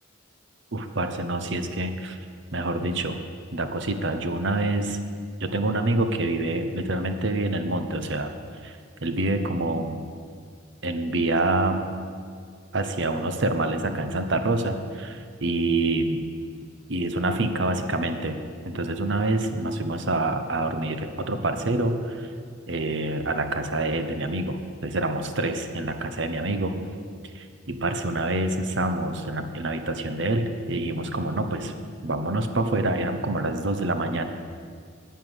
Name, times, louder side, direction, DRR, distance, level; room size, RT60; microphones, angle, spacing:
voice 1, 0.7-2.2 2.5-3.2 3.5-5.0 5.4-8.3 8.6-10.0 10.8-11.9 12.7-15.1 15.4-16.3 16.9-18.4 18.6-22.3 22.7-26.7 27.3-31.7 32.0-34.3, right 2 dB, 60° right, 7 dB, 0.9 m, -26 dB
10.5 x 9.2 x 8.0 m, 2.1 s
head